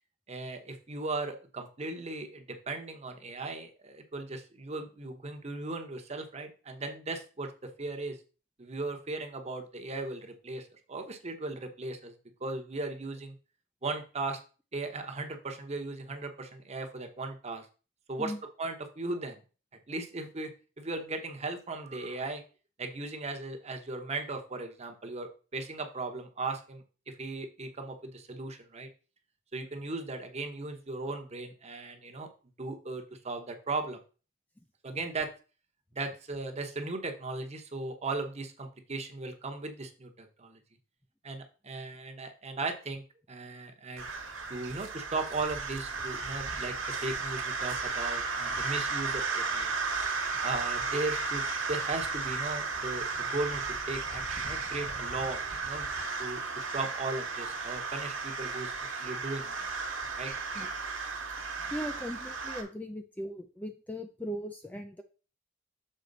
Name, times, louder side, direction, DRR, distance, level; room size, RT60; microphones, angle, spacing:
voice 1, 0.3-8.2 8.6-12.1 12.4-13.3 13.8-14.4 14.7-17.7 18.1-18.3 18.6-19.4 19.9-20.5 20.8-22.4 22.8-26.8 27.2-28.9 29.5-32.3 32.6-34.0 34.8-35.3 35.9-40.6 41.2-43.0 43.3-44.1 44.5-46.7 47.0-49.7 50.4-55.9 56.2-58.7 59.0-59.7 60.2-60.3, right 3 dB, 35° right, 5 dB, 1.0 m, -37 dB
sound 1, 44.0-62.6, right 4 dB, 70° right, 1.3 m, -34 dB
voice 2, 61.7-65.0, equal, 10° left, 6 dB, 0.4 m, -38 dB
6.6 x 4.4 x 3.9 m, 0.35 s
head